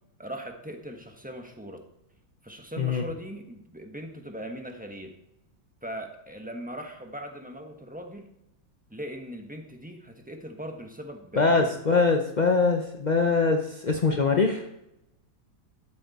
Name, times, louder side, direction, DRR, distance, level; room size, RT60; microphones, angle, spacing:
voice 1, 0.2-1.8 2.4-5.1 5.8-8.3 8.9-11.7, equal, 5° right, 3 dB, 0.9 m, -39 dB
voice 2, 11.4-14.7, left 4 dB, 70° left, 3 dB, 0.4 m, -23 dB
13.0 x 8.5 x 4.2 m, 0.84 s
omnidirectional pair, 2.1 m